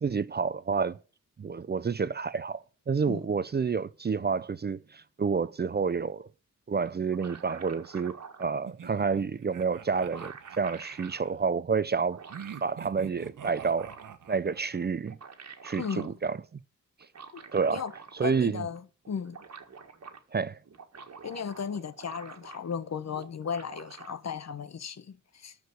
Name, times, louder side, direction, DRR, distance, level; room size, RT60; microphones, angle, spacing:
voice 1, 0.0-1.0 1.4-6.3 6.7-12.2 12.6-13.9 14.3-15.2 15.6-16.6 17.5-17.8 18.2-18.7 20.3-20.6, right 5 dB, 30° right, 0.5 m, -29 dB
sound 1, 6.9-8.6 9.5-9.6 9.9-11.2 11.9-12.7 13.3-14.3 14.9-16.1 17.0-18.5 18.8-18.9 19.1-20.2 20.6-22.8 23.1-24.1, right 5 dB, 55° right, 1.8 m, -47 dB
sound 2, 8.7-11.4 12.3-14.9, right 8 dB, 75° right, 1.1 m, -45 dB
voice 2, 15.8-16.1 17.3-17.4 17.7-17.9 18.2-19.4 21.2-25.6, left 7 dB, 55° left, 0.9 m, -36 dB
13.0 x 4.8 x 8.1 m
wide cardioid pair, 120°, 32 cm